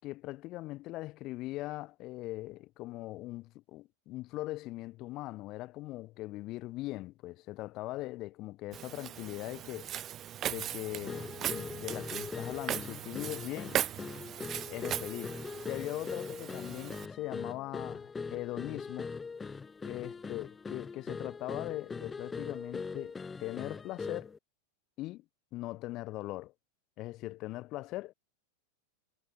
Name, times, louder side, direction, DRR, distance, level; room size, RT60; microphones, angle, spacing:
voice 1, 0.0-9.9 10.5-13.8 14.7-15.4 15.6-19.1 19.8-24.3 25.0-25.2 25.5-26.5 27.0-28.1, left 18 dB, 40° left, 5.8 m, -40 dB
Walk footsteps, 8.7-17.1, right 11 dB, 30° right, 7.3 m, -39 dB
sound 1, 11.1-24.4, left 4 dB, 15° left, 6.5 m, -41 dB
figure-of-eight pair, 90°, 0 cm